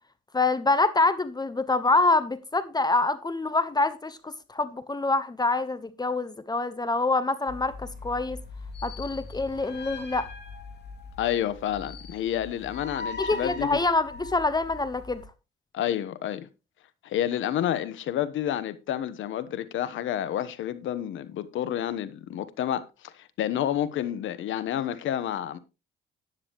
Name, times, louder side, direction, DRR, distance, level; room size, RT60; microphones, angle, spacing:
voice 1, 0.3-8.4 8.8-10.3 13.2-15.2, left 3 dB, 20° left, 1.0 m, -26 dB
sound 1, 7.5-15.3, left 3 dB, 55° left, 2.7 m, -40 dB
voice 2, 11.2-13.8 15.7-16.5 17.0-25.6, left 11 dB, 80° left, 1.1 m, -29 dB
12.0 x 10.0 x 3.0 m
cardioid pair, 90°, 20 cm